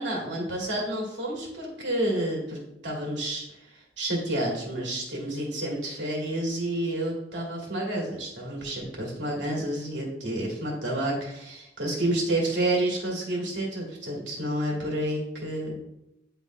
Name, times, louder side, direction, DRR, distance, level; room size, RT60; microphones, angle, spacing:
voice 1, 0.0-15.8, right 1 dB, 80° right, -2 dB, 2.0 m, -30 dB
9.4 x 3.5 x 3.1 m, 0.86 s
head